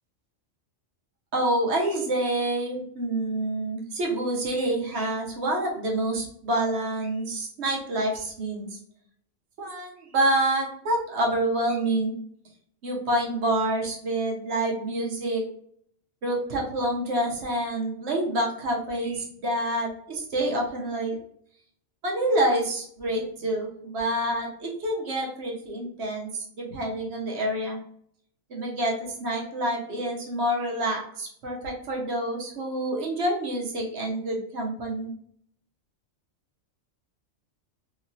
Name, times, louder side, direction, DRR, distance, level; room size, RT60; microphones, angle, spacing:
voice 1, 1.3-8.8 9.6-12.1 12.8-15.4 16.2-21.2 22.0-27.8 28.5-35.1, right 1 dB, 60° right, -1 dB, 0.9 m, -27 dB
3.0 x 3.0 x 2.6 m, 0.65 s
omnidirectional pair, 1.4 m